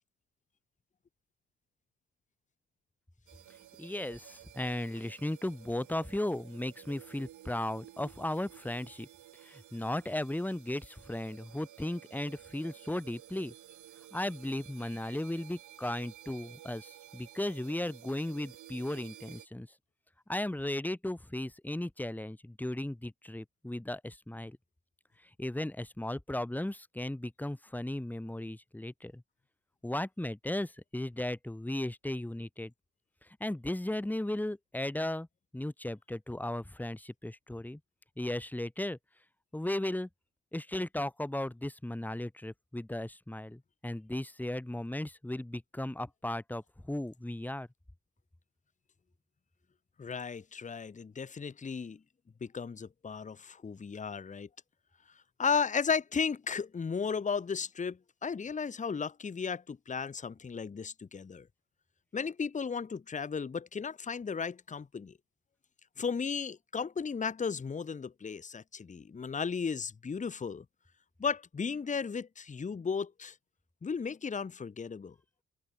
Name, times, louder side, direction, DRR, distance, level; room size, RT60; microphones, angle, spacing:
sound 1, 3.3-19.5, right 13 dB, 80° right, 5.0 m, -54 dB
voice 1, 3.8-9.1 9.4-13.5 14.1-19.7 20.3-24.6 25.4-29.2 29.8-32.7 33.4-35.3 35.5-37.8 38.2-39.0 39.5-40.1 40.5-47.7, left 1 dB, 5° left, 1.6 m, -36 dB
voice 2, 50.0-52.0 52.4-54.5 55.4-61.5 62.1-65.1 66.0-70.6 71.2-73.3 73.8-75.1, left 6 dB, 25° left, 1.0 m, -35 dB
open air
cardioid pair, 90°, 30 cm